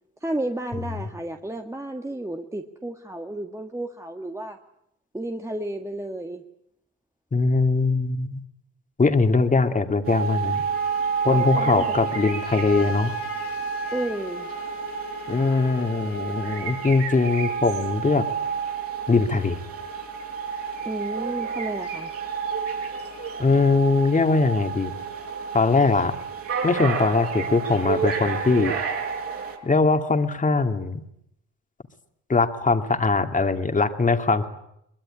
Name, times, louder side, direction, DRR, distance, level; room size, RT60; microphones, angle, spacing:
voice 1, 0.2-4.6 5.1-6.4 11.3-12.0 13.9-14.5 20.9-22.1, right 1 dB, 10° right, 4 dB, 1.6 m, -32 dB
voice 2, 7.3-8.4 9.0-10.6 11.2-13.1 15.3-18.3 19.1-19.6 23.4-24.9 25.5-26.1 26.6-28.7 29.6-31.0 32.3-34.5, left 3 dB, 25° left, 6 dB, 2.4 m, -21 dB
sound 1, 10.0-29.6, right 6 dB, 50° right, 6.3 m, -30 dB
Wind instrument woodwind instrument, 10.7-17.0, left 6 dB, 45° left, 2.2 m, -40 dB
23.5 x 20.5 x 9.9 m, 0.78 s
cardioid pair, 90°, 30 cm